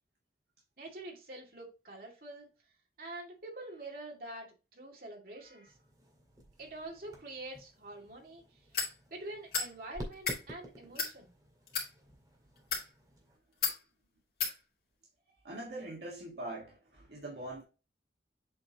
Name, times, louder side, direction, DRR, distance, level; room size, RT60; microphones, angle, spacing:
voice 1, 0.8-2.5 3.0-5.7 6.6-8.4 9.1-11.3, right 2 dB, 55° right, 2.3 m, -46 dB
sound 1, 5.7-13.4, equal, 20° right, 1.9 m, -51 dB
sound 2, 8.7-8.9 9.5-9.7 10.1-10.4 10.9-11.1 11.7-11.9 12.6-12.9 13.6-13.8 14.4-14.5, left 6 dB, 55° left, 2.5 m, -32 dB
voice 2, 15.4-17.6, right 1 dB, 70° right, 1.8 m, -43 dB
7.8 x 4.3 x 2.9 m
head